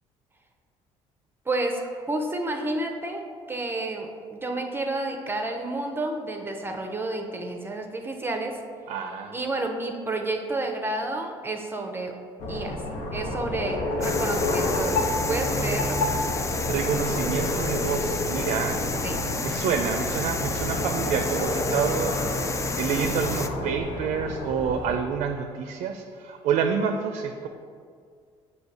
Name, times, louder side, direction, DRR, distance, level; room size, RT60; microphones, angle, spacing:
voice 1, 1.5-8.6 9.3-12.2 12.5-12.8 13.1-16.0 19.0-19.2, right 2 dB, 20° right, 3 dB, 0.6 m, -30 dB
voice 2, 8.9-9.5 16.6-18.8 19.4-27.5, right 6 dB, 70° right, 5 dB, 0.4 m, -28 dB
sound 1, 12.4-25.0, left 1 dB, 75° left, 0.9 m, -29 dB
sound 2, 14.0-23.5, left 4 dB, 25° left, 0.4 m, -31 dB
6.3 x 2.8 x 5.3 m, 2.1 s
supercardioid pair, 75°, 12 cm